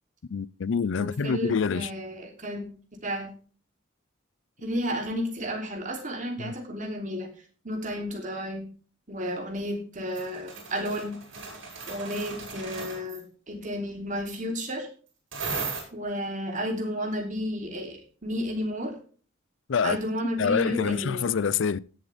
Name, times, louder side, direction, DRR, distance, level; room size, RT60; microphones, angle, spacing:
voice 1, 0.3-1.9 6.4-6.5 19.7-20.0 20.4-21.8, left 6 dB, 70° left, 0.5 m, -26 dB
voice 2, 1.0-2.7 3.0-3.3 4.6-7.3 7.6-8.7 9.1-11.2 11.9-14.9 15.9-18.9 19.8-21.3, equal, 40° right, 3.0 m, -32 dB
sound 1, 10.1-13.2 15.3-15.8, right 4 dB, 70° right, 5.5 m, -36 dB
17.0 x 7.6 x 3.4 m
head